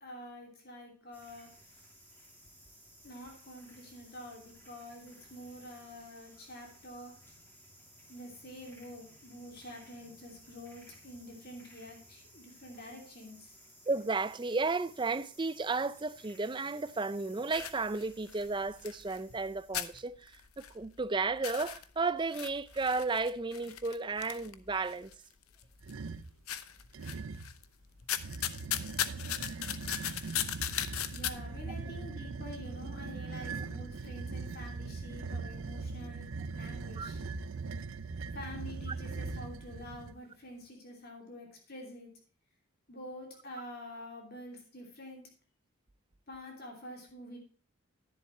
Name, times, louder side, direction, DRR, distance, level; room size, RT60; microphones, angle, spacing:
voice 1, 0.0-1.6 3.0-7.2 8.1-13.6 31.1-37.2 38.3-42.1 42.9-45.2 46.3-47.4, left 1 dB, 45° left, 2.9 m, -47 dB
sound 1, 1.1-19.7, equal, 10° left, 2.8 m, -58 dB
voice 2, 13.9-20.3 20.7-25.1 37.0-37.1, right 3 dB, 20° right, 0.4 m, -33 dB
sound 2, 17.5-19.5 19.7-21.0 21.3-25.1 25.6-26.1 26.5-27.6 28.0-31.3, left 11 dB, 90° left, 0.8 m, -37 dB
sound 3, 25.8-26.3 26.9-27.6 28.2-40.2, right 4 dB, 75° right, 0.5 m, -40 dB
10.5 x 10.5 x 3.1 m
head